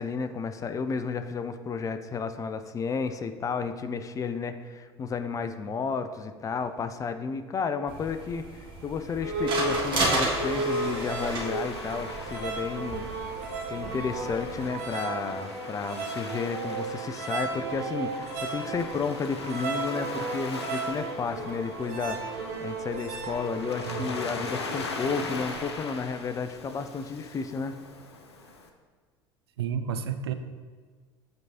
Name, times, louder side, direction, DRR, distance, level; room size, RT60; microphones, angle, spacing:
voice 1, 0.0-13.1 13.7-27.7, left 5 dB, 25° left, 9 dB, 0.4 m, -32 dB
sound 1, 7.9-14.7, right 2 dB, 35° right, 1.7 m, -33 dB
sound 2, 9.2-24.6, right 3 dB, 55° right, 1.0 m, -34 dB
Waves surf, 9.9-28.7, left 3 dB, 80° left, 0.5 m, -40 dB
voice 2, 29.6-30.3, right 7 dB, 70° right, 9 dB, 0.4 m, -31 dB
7.9 x 4.6 x 2.7 m, 1.5 s
figure-of-eight pair, 65°, 14 cm